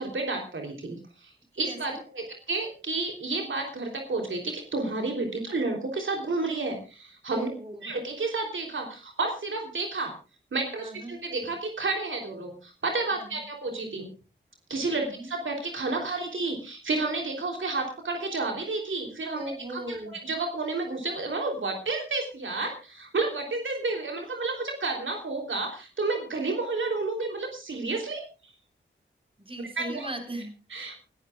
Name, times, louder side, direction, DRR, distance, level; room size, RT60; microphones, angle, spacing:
voice 1, 0.0-7.5 7.8-10.1 10.5-14.1 14.7-20.0 20.2-28.2 29.8-30.1 30.7-31.0, right 3 dB, 80° right, 2 dB, 3.3 m, -31 dB
voice 2, 1.7-2.0 7.3-7.8 10.8-11.1 13.1-13.4 15.0-15.3 19.4-20.2 29.4-31.0, right 1 dB, 25° right, 3 dB, 5.2 m, -38 dB
28.5 x 13.0 x 2.4 m, 0.33 s
cardioid pair, 60°, 20 cm